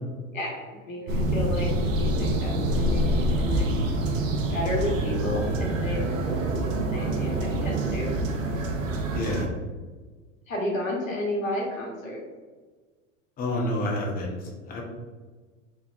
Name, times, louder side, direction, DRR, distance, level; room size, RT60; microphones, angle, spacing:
voice 1, 0.3-3.7 4.5-8.2 10.5-12.2, left 1 dB, 90° left, -2 dB, 1.0 m, -32 dB
sound 1, 1.1-9.5, right 1 dB, 80° right, 0.6 m, -26 dB
voice 2, 9.1-9.5 13.4-14.8, left 1 dB, 25° left, 0 dB, 0.6 m, -29 dB
3.4 x 2.9 x 2.4 m, 1.4 s
hypercardioid pair, 95°, 39 cm